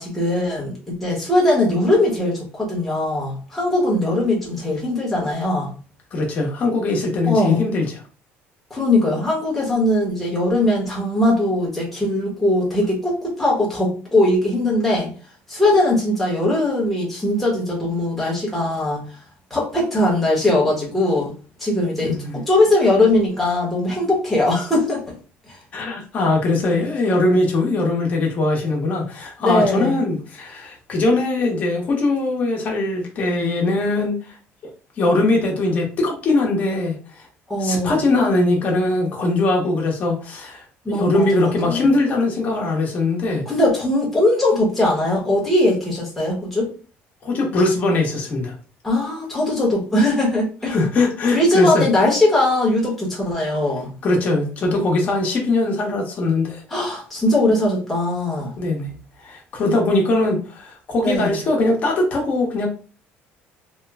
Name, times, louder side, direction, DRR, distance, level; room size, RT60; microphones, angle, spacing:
voice 1, 0.0-5.7 7.3-7.6 8.7-15.1 15.5-19.0 19.5-21.3 21.6-25.1 25.5-25.6 29.4-30.0 37.5-38.0 40.8-41.9 43.5-46.7 48.8-50.7 51.3-53.9 56.7-58.5 61.0-61.4, left 1 dB, 5° left, -5 dB, 0.9 m, -20 dB
voice 2, 6.1-8.0 22.0-22.4 25.7-34.3 35.0-37.3 37.6-43.4 47.2-48.5 50.7-51.8 54.0-56.6 58.6-58.9 59.2-62.7, left 2 dB, 35° left, 0 dB, 1.0 m, -21 dB
3.0 x 2.1 x 3.4 m, 0.38 s
cardioid pair, 165°, 4 cm